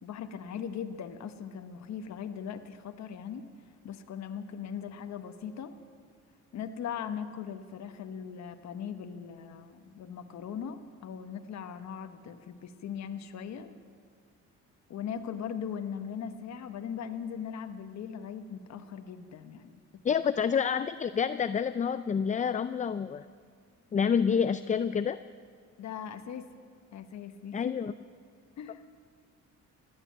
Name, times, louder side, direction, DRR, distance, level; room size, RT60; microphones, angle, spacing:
voice 1, 0.0-3.5 3.8-5.7 6.5-13.7 14.9-19.7 25.8-26.5 26.9-27.7 28.6-28.8, left 7 dB, 65° left, 8 dB, 1.1 m, -39 dB
voice 2, 20.0-23.2 23.9-25.2 27.5-27.9, left 7 dB, 25° left, 13 dB, 0.4 m, -28 dB
15.5 x 11.0 x 8.5 m, 2.1 s
cardioid pair, 90°, 30 cm